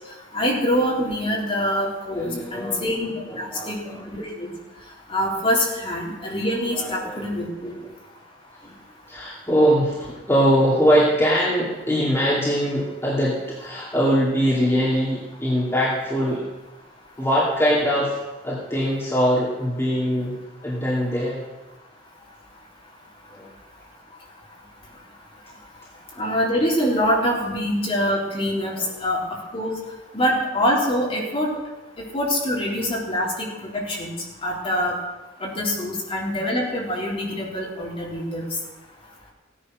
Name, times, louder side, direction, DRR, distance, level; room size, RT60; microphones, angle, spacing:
voice 1, 0.3-3.1 3.4-3.8 4.1-4.5 5.1-7.7 26.2-29.2 29.5-29.7 30.1-31.5 32.0-34.1 34.4-34.9 35.4-38.5, equal, 30° left, -3 dB, 3.6 m, -24 dB
voice 2, 2.1-2.9 3.3-4.0 6.7-7.2 7.6-7.9 8.6-8.7 9.1-16.5 17.2-21.4 23.3-23.5 28.8-28.9, equal, 15° left, -6 dB, 2.4 m, -22 dB
16.0 x 10.0 x 6.3 m, 1.1 s
head